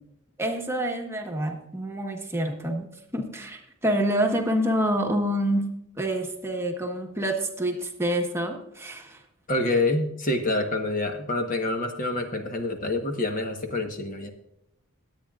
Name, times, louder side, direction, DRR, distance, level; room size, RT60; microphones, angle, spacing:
voice 1, 0.4-5.7 6.0-9.2, right 1 dB, 10° right, 2 dB, 1.3 m, -27 dB
voice 2, 9.5-14.3, left 2 dB, 40° left, 5 dB, 1.2 m, -27 dB
21.0 x 8.6 x 2.5 m, 0.81 s
head